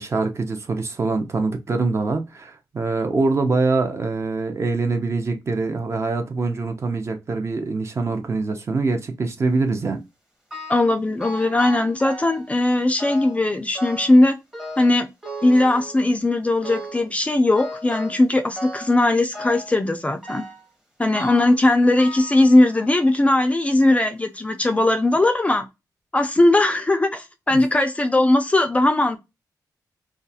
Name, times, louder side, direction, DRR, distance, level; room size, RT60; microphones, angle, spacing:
voice 1, 0.0-10.0, right 3 dB, 40° right, 0.5 m, -24 dB
sound 1, 10.5-11.0 11.2-12.5 13.0-13.4 13.8-14.2 14.5-16.2 16.6-17.1 17.6-18.3 18.6-19.0 19.3-19.8 20.2-20.7 21.1-21.6 22.0-23.1 23.7-23.8 24.6-24.7 25.2-25.3, equal, 10° right, 0.8 m, -36 dB
voice 2, 10.7-14.4 14.8-15.1 15.4-20.4 21.0-25.7 26.1-29.2, left 2 dB, 20° left, 0.3 m, -19 dB
2.3 x 2.3 x 2.6 m
wide cardioid pair, 120°, 7 cm